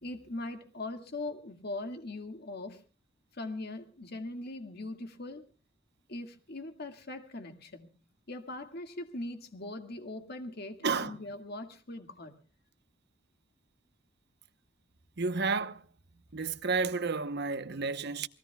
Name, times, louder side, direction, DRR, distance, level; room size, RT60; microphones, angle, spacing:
voice 1, 0.0-2.8 3.3-5.4 6.1-7.9 8.3-12.3, left 2 dB, 55° left, 2.0 m, -41 dB
voice 2, 10.8-11.2 15.2-15.8 16.3-18.3, right 4 dB, 60° right, 0.9 m, -31 dB
28.0 x 19.5 x 2.3 m
head